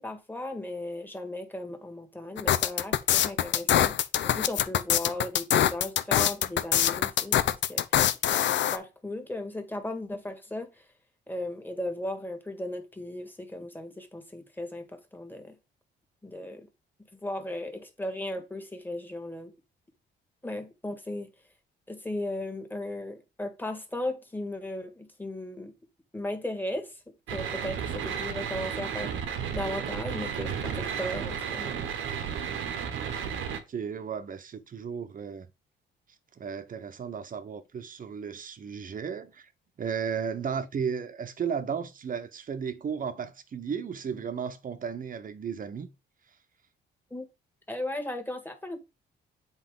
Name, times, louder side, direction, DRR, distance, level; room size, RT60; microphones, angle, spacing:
voice 1, 0.0-10.9 11.3-15.5 16.2-16.7 17.1-19.5 20.4-21.3 21.9-25.7 26.1-27.0 27.3-31.8 47.1-47.3 47.7-48.8, left 1 dB, 10° left, 1.7 m, -36 dB
sound 1, 2.4-8.8, left 11 dB, 65° left, 0.6 m, -24 dB
sound 2, 27.3-33.6, right 7 dB, 80° right, 1.3 m, -33 dB
voice 2, 33.5-35.5 36.3-39.5 39.8-45.9, right 6 dB, 45° right, 1.0 m, -34 dB
8.1 x 4.0 x 3.8 m
cardioid pair, 90°, 20 cm